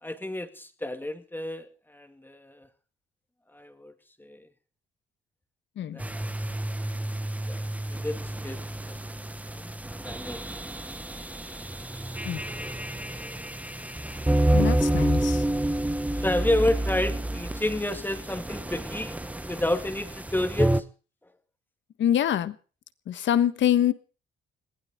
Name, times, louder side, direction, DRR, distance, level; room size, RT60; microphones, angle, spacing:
voice 1, 0.0-2.7 3.5-3.9 4.2-4.5 5.9-6.3 7.5-7.6 7.9-9.7 10.0-10.4 12.5-13.6 16.2-19.2 19.4-20.8, left 1 dB, 10° left, 7 dB, 2.2 m, -31 dB
sound 1, 6.0-20.8, right 1 dB, 5° right, 1.0 m, -29 dB
voice 2, 14.5-15.4 22.0-22.5 23.1-23.9, left 10 dB, 70° left, 13 dB, 1.4 m, -24 dB
21.5 x 16.0 x 3.6 m, 0.37 s
cardioid pair, 90°, 20 cm